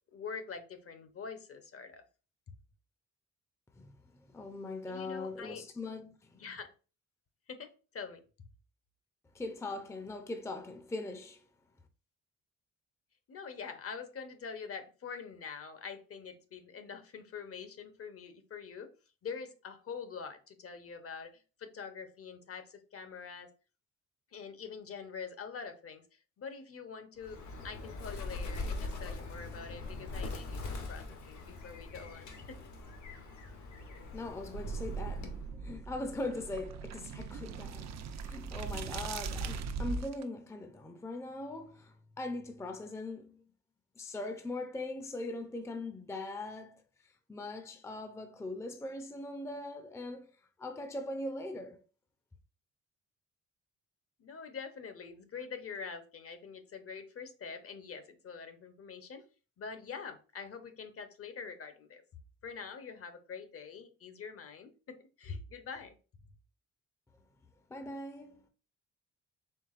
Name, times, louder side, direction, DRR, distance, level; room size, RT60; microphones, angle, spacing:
voice 1, 0.1-2.0 4.9-5.6 6.3-6.7 7.5-8.2 13.3-18.9 19.2-23.5 24.3-27.4 27.6-30.6 30.9-32.6 54.2-59.2 59.6-62.0 62.4-65.9 66.2-66.3, left 5 dB, 50° left, 0.8 m, -45 dB
voice 2, 3.8-6.4 9.3-11.4 33.8-43.4 44.0-50.3 50.6-51.8 67.7-68.4, left 2 dB, 10° left, 0.5 m, -41 dB
Bird, 27.2-35.5, left 3 dB, 70° left, 1.1 m, -42 dB
sound 1, 34.5-40.2, right 5 dB, 60° right, 0.6 m, -39 dB
4.6 x 3.4 x 2.5 m
cardioid pair, 90°, 30 cm